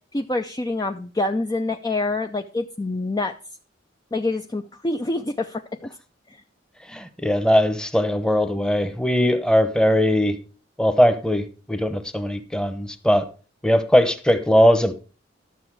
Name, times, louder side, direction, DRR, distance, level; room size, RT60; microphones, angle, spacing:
voice 1, 0.1-3.3 4.1-5.6 6.3-6.4, left 2 dB, 20° left, 0.5 m, -26 dB
voice 2, 6.9-10.4 10.8-13.3 13.6-14.9, equal, 5° left, 0.9 m, -20 dB
12.0 x 6.9 x 4.6 m
head